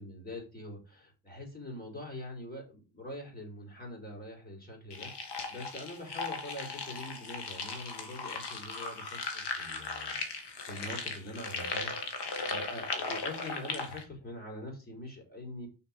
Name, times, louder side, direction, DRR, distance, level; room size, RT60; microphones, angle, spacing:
voice 1, 0.0-10.2 10.6-15.7, left 1 dB, 20° left, 0 dB, 4.4 m, -44 dB
sound 1, 4.9-14.0, left 4 dB, 65° left, 2.1 m, -37 dB
6.4 x 5.9 x 5.3 m, 0.30 s
cardioid pair, 140°, 44 cm